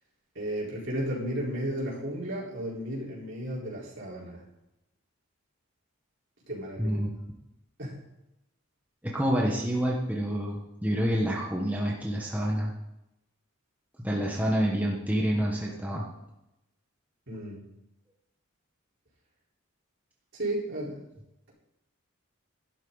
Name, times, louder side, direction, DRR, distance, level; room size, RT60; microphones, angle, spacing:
voice 1, 0.3-4.4 6.5-7.0 7.8-8.0 17.3-17.6 20.3-21.0, right 1 dB, 55° right, -5 dB, 4.5 m, -33 dB
voice 2, 6.8-7.2 9.0-12.7 14.0-16.0, equal, 10° right, -3 dB, 1.3 m, -28 dB
12.0 x 11.5 x 4.1 m, 0.90 s
head